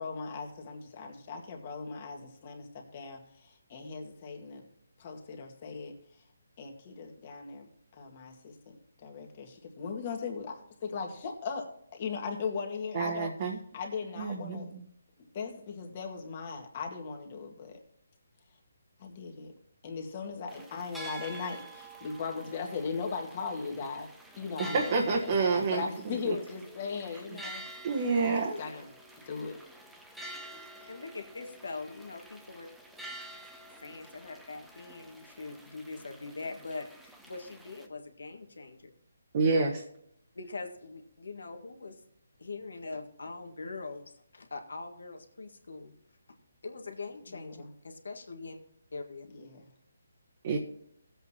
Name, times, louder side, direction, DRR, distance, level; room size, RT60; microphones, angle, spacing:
voice 1, 0.0-4.7 5.0-6.0 6.6-7.7 7.9-13.3 13.7-14.8 15.3-17.8 19.0-19.5 19.8-24.1 24.4-27.6 28.2-28.9 29.3-29.6 47.3-47.7 49.3-49.7, left 5 dB, 40° left, 2 dB, 1.9 m, -38 dB
voice 2, 12.9-13.6 14.2-14.8 24.6-26.3 27.8-28.6 39.3-39.8 50.4-50.6, right 4 dB, 40° right, -1 dB, 1.4 m, -28 dB
sound 1, 20.5-37.9, right 2 dB, 5° right, 0.9 m, -48 dB
voice 3, 30.5-32.7 33.8-38.9 40.3-42.0 42.4-45.9 46.6-48.6 48.9-49.3, left 3 dB, 80° left, 5 dB, 1.6 m, -42 dB
16.0 x 8.0 x 2.9 m, 0.70 s
hypercardioid pair, 155°, 0 cm